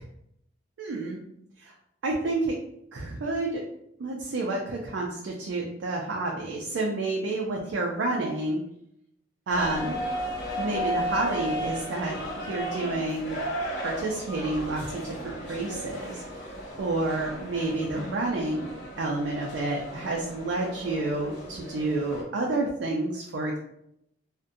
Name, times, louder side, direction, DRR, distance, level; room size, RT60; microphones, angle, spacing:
voice 1, 0.8-1.2 1.6-1.7 2.0-2.6 2.9-3.6 4.0-8.6 9.5-10.0 10.6-13.4 13.8-16.2 16.8-18.7 19.0-23.6, right 2 dB, 80° right, -1 dB, 0.4 m, -29 dB
sound 1, 9.5-22.2, equal, 70° left, 0.7 m, -35 dB
2.4 x 2.1 x 2.6 m, 0.75 s
head